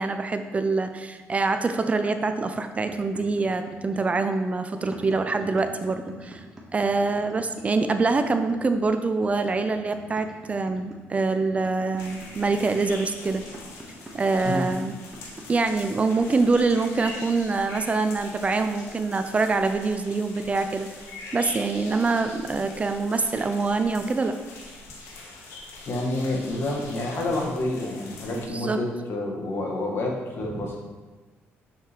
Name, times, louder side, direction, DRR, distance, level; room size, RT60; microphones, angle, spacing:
voice 1, 0.0-6.4 6.7-13.4 14.1-14.9 15.5-20.9 21.3-24.4 28.3-28.8 30.6-30.7, right 3 dB, 30° right, 8 dB, 0.4 m, -25 dB
sound 1, 2.9-17.4, right 1 dB, 15° right, 1.3 m, -44 dB
sound 2, 12.0-28.5, left 3 dB, 85° left, 1.1 m, -43 dB
voice 2, 25.9-30.8, left 2 dB, 55° left, 0 dB, 1.5 m, -28 dB
6.6 x 6.4 x 3.1 m, 1.3 s
cardioid pair, 95°, 5 cm